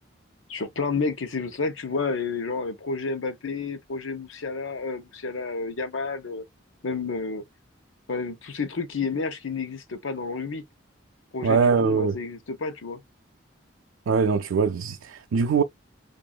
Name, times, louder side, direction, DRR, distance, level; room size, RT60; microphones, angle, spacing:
voice 1, 0.5-6.4 6.8-7.4 8.1-10.6 11.3-13.0, left 4 dB, 85° left, 0.8 m, -30 dB
voice 2, 11.4-12.2 14.1-15.6, right 5 dB, 90° right, 0.4 m, -22 dB
4.9 x 2.5 x 2.2 m
head